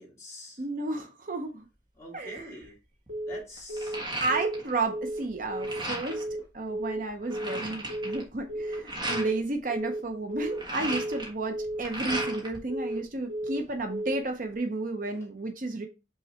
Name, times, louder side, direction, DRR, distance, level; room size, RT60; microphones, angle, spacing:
voice 1, 0.0-0.6 2.0-2.7 3.3-4.4, left 1 dB, 15° left, 2.3 m, -46 dB
voice 2, 0.6-1.7 2.1-2.6 4.2-6.3 6.5-15.9, right 2 dB, 45° right, 0.7 m, -32 dB
sound 1, 2.4-2.6 3.1-4.8 5.1-6.3 6.8-6.9 7.1-9.3 10.3-12.6 12.9-13.8, right 1 dB, 25° right, 1.6 m, -36 dB
Telephone, 3.1-3.4 3.7-4.0 4.3-4.6 4.9-5.2 5.5-5.8 6.1-6.4 6.7-7.0 7.3-7.6 7.9-8.2 8.5-8.8 9.1-9.4 9.7-10.0 10.3-10.6 10.9-11.2 11.5-11.8 12.1-12.4 12.7-13.0 13.3-13.6 13.9-14.2, right 1 dB, 70° right, 2.1 m, -33 dB
5.6 x 3.9 x 4.3 m
head